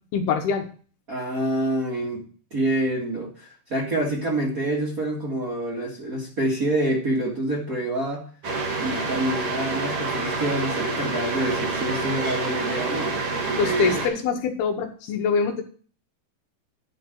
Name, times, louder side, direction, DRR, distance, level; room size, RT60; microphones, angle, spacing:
voice 1, 0.1-0.7 13.6-15.6, left 5 dB, 70° left, 4 dB, 2.7 m, -24 dB
voice 2, 1.1-2.2 2.5-8.2 8.8-14.0, right 1 dB, 90° right, -3 dB, 0.7 m, -27 dB
sound 1, 8.4-14.1, right 3 dB, 45° right, 2.0 m, -28 dB
11.0 x 4.2 x 7.6 m, 0.41 s
omnidirectional pair, 5.3 m